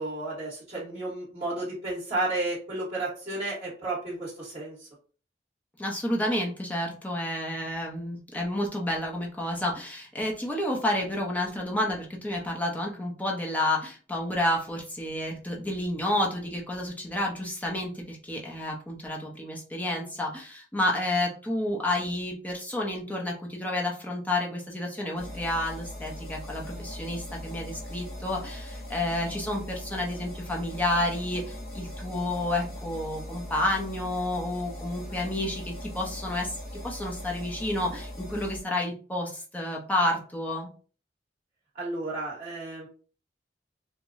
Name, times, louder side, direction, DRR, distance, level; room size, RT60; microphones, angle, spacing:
voice 1, 0.0-4.9 41.7-42.9, right 2 dB, 35° right, -8 dB, 1.6 m, -32 dB
voice 2, 5.8-36.5 36.8-40.7, left 1 dB, 10° left, -1 dB, 0.8 m, -30 dB
sound 1, 25.2-38.6, left 1 dB, 60° left, 1.1 m, -40 dB
4.6 x 2.2 x 2.6 m, 0.39 s
head